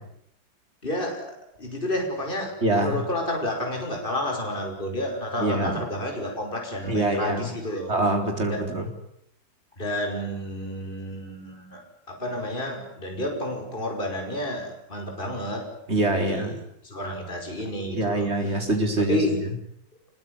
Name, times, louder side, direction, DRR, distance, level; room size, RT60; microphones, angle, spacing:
voice 1, 0.8-1.3 1.6-7.9 8.5-8.6 9.8-11.8 12.1-15.7 16.1-16.5 16.8-18.6 19.0-19.3, left 1 dB, 25° left, 2 dB, 5.8 m, -30 dB
voice 2, 2.6-3.0 5.4-5.8 6.9-7.5 7.9-8.9 15.9-16.6 17.9-19.5, right 2 dB, 30° right, 4 dB, 4.4 m, -25 dB
26.0 x 22.0 x 9.8 m, 0.73 s
omnidirectional pair, 2.1 m